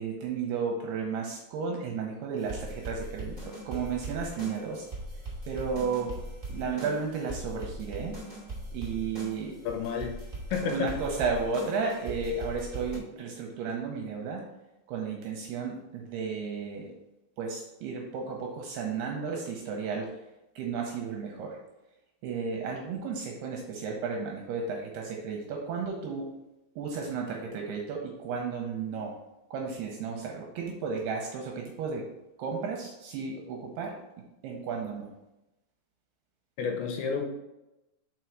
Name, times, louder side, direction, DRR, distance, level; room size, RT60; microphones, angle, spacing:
voice 1, 0.0-4.8 5.5-6.1 6.5-8.2 8.7-9.5 10.6-14.4 14.9-16.9 17.4-20.1 20.6-21.6 22.2-26.3 26.8-29.2 29.5-32.0 32.4-34.0 34.4-35.1, right 5 dB, 80° right, 0 dB, 2.4 m, -33 dB
sound 1, 2.4-13.0, right 1 dB, 45° right, 0.4 m, -40 dB
voice 2, 9.6-10.2 10.5-10.9 36.6-37.2, left 6 dB, 85° left, 3 dB, 3.1 m, -30 dB
6.1 x 4.7 x 4.6 m, 0.95 s
omnidirectional pair, 5.3 m